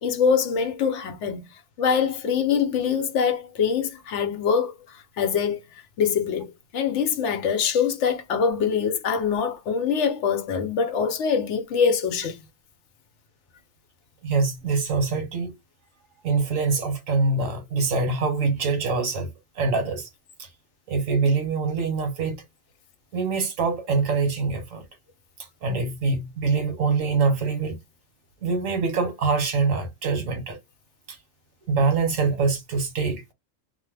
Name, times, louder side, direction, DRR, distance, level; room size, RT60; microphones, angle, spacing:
voice 1, 0.0-1.4 1.8-5.6 6.0-12.4, left 6 dB, 70° left, 0.9 m, -24 dB
voice 2, 14.2-15.5 16.2-19.3 19.6-20.1 20.4-20.5 20.9-22.4 23.1-24.8 25.6-27.8 28.4-30.6 31.1-31.2 31.7-33.2, right 4 dB, 85° right, 1.4 m, -24 dB
2.7 x 2.0 x 3.2 m
omnidirectional pair, 1.3 m